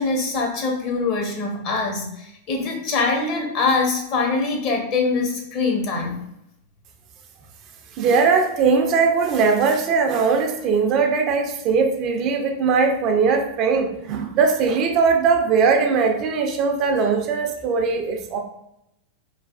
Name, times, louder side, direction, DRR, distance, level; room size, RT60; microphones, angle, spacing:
voice 1, 0.0-6.2, left 3 dB, 45° left, 1 dB, 0.8 m, -23 dB
voice 2, 8.0-18.4, right 5 dB, 40° right, 4 dB, 0.4 m, -20 dB
3.2 x 2.2 x 2.4 m, 0.79 s
figure-of-eight pair, 95°, 0 cm